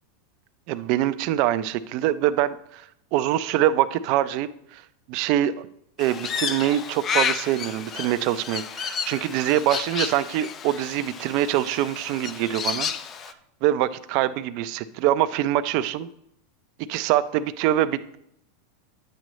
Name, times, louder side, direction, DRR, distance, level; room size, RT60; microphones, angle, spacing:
voice 1, 0.7-2.9 3.1-4.8 5.1-5.7 6.0-12.9 13.6-16.1 16.9-18.2, right 12 dB, 50° right, 12 dB, 0.4 m, -24 dB
Crow, 6.0-13.3, left 7 dB, 25° left, 0.4 m, -31 dB
10.0 x 7.6 x 3.1 m, 0.75 s
supercardioid pair, 150°, 0 cm